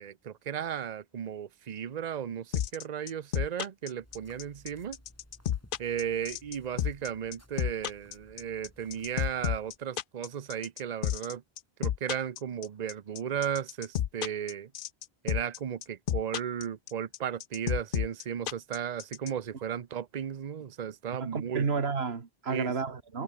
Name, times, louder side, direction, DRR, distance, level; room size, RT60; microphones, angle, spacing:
voice 1, 0.0-5.0 5.8-11.4 11.8-14.7 15.2-21.7 22.5-22.7, right 8 dB, 45° right, 0.8 m, -35 dB
sound 1, 2.5-19.3, left 10 dB, 60° left, 0.7 m, -31 dB
sound 2, 3.9-9.8, equal, 15° left, 5.3 m, -58 dB
voice 2, 21.2-23.2, right 5 dB, 90° right, 1.9 m, -31 dB
omnidirectional pair, 1.0 m